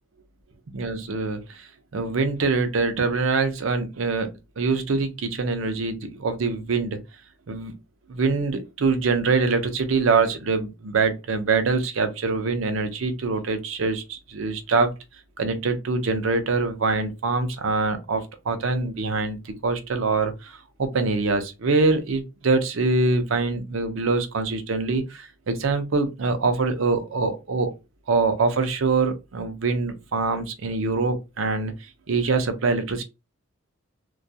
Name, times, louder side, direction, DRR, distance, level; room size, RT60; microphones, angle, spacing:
voice 1, 0.8-7.0 7.5-7.8 8.1-14.9 15.4-27.7 28.1-31.7 32.1-33.0, right 4 dB, 70° right, 0.5 m, -24 dB
2.3 x 2.2 x 2.6 m
head